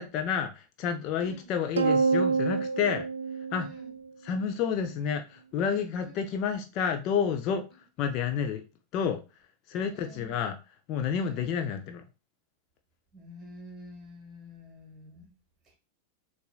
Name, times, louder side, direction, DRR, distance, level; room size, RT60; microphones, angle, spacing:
voice 1, 0.0-3.1 3.5-3.7 4.2-7.7 8.0-8.6 8.9-9.2 9.7-10.6 10.9-12.0, left 7 dB, 40° left, 0.5 m, -30 dB
voice 2, 1.2-1.5 3.6-3.9 6.0-6.1 9.9-10.3 11.2-11.6 13.1-15.3, left 1 dB, 20° right, 1.7 m, -48 dB
sound 1, 1.8-4.4, right 4 dB, 70° right, 0.3 m, -27 dB
6.6 x 2.5 x 2.4 m
figure-of-eight pair, 90°, 0 cm